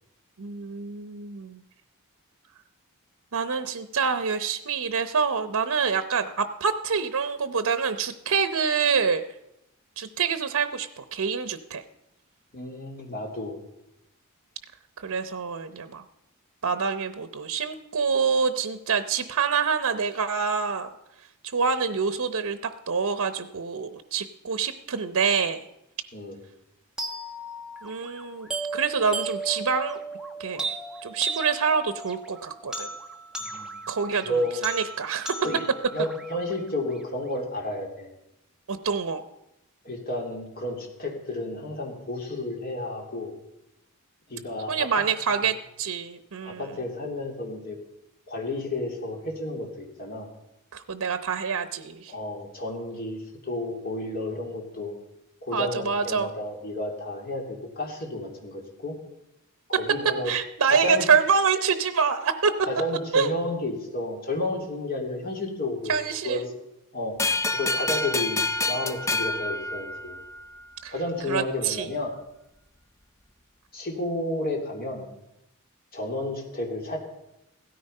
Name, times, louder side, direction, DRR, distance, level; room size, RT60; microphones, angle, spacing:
voice 1, 0.4-1.6 3.3-9.2 10.0-11.8 15.0-16.0 16.6-20.9 21.5-25.6 27.8-30.0 30.4-30.7 31.0-32.9 33.9-35.3 38.7-39.2 44.7-46.7 50.7-52.1 55.5-56.3 60.3-62.5 63.1-63.3 65.9-66.5 70.8-70.9 71.3-71.9, right 5 dB, 80° right, 11 dB, 0.8 m, -26 dB
voice 2, 12.5-13.6 26.1-26.4 33.4-33.8 34.2-34.6 35.4-35.6 35.9-38.1 39.8-43.3 44.3-45.0 46.4-47.8 48.3-50.3 52.1-53.2 53.4-54.9 55.4-58.9 59.7-60.3 60.7-61.1 62.7-66.0 66.2-66.5 66.9-67.2 67.5-70.2 70.9-72.1 73.7-75.1 75.9-77.0, left 1 dB, 40° left, 1 dB, 3.1 m, -31 dB
sound 1, 27.0-37.0, right 3 dB, 5° right, 1.3 m, -36 dB
sound 2, 67.2-70.4, left 2 dB, 15° left, 0.4 m, -27 dB
16.5 x 13.5 x 5.5 m, 0.86 s
head